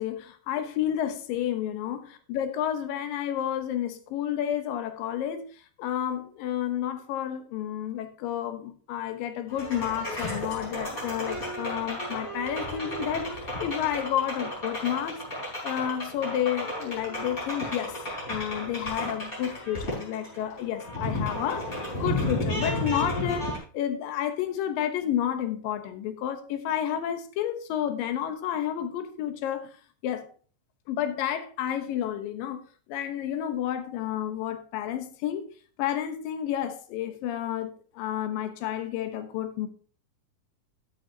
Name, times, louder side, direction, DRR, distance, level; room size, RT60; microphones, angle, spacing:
voice 1, 0.0-5.4 5.8-15.2 15.6-18.0 18.3-21.7 22.0-29.7 30.0-30.3 30.9-32.6 32.9-35.5 35.8-39.7, left 10 dB, 70° left, 2.4 m, -30 dB
sound 1, 9.5-23.6, left 1 dB, 15° left, 4.2 m, -33 dB
13.0 x 8.8 x 2.7 m
omnidirectional pair, 4.6 m